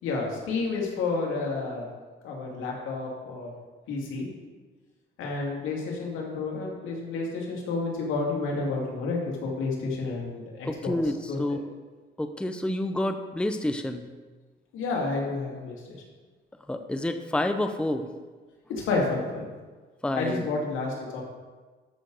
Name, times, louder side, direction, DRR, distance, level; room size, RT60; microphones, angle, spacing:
voice 1, 0.0-1.9 2.2-3.5 3.9-4.3 5.2-11.0 11.3-11.4 14.7-15.7 18.7-19.5 20.1-21.2, left 3 dB, 90° left, -2 dB, 2.6 m, -30 dB
voice 2, 10.7-11.6 12.2-14.1 16.7-18.1 20.0-20.5, left 1 dB, 5° left, 7 dB, 0.7 m, -28 dB
13.0 x 6.3 x 4.0 m, 1.4 s
cardioid pair, 90°, 20 cm